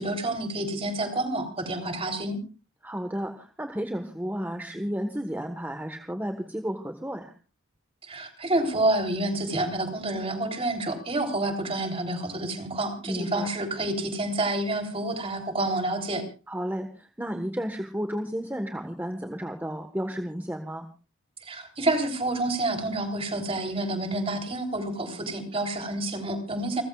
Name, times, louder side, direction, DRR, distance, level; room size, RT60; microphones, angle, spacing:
voice 1, 0.0-2.4 8.0-16.2 21.4-26.8, right 2 dB, 30° right, 4 dB, 3.5 m, -28 dB
voice 2, 2.8-7.3 13.1-13.5 16.5-20.9, equal, 10° right, 5 dB, 1.3 m, -32 dB
29.5 x 14.5 x 2.4 m, 0.34 s
head